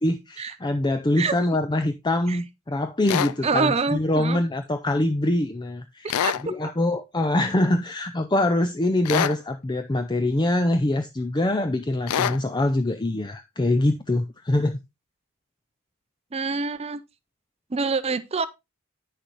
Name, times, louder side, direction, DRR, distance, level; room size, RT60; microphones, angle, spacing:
voice 1, 0.0-14.8, left 1 dB, 20° left, 0.5 m, -24 dB
sound 1, 3.1-3.3 6.1-6.4 9.0-9.4 12.1-12.4, left 9 dB, 80° left, 0.4 m, -24 dB
voice 2, 3.4-4.4 6.2-6.3 16.3-17.0 17.7-18.5, right 4 dB, 25° right, 0.5 m, -25 dB
9.5 x 6.6 x 3.1 m
head